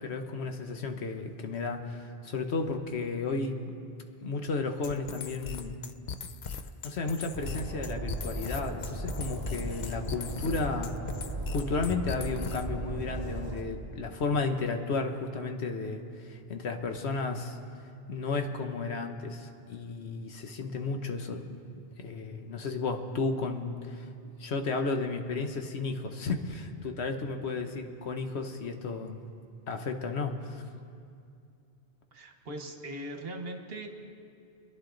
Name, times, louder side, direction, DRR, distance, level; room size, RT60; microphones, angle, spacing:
voice 1, 0.0-3.7 4.2-5.8 6.8-10.9 11.5-17.6 18.1-21.4 22.0-24.1 24.4-29.2 29.7-30.6, left 3 dB, 75° left, 5 dB, 1.2 m, -33 dB
sound 1, 4.8-12.8, left 6 dB, 50° left, 0.6 m, -40 dB
Train, 7.3-13.6, right 2 dB, 20° right, 1.4 m, -37 dB
voice 2, 32.1-33.9, right 1 dB, 60° right, 4 dB, 1.4 m, -40 dB
25.5 x 10.5 x 3.9 m, 2.4 s
omnidirectional pair, 1.1 m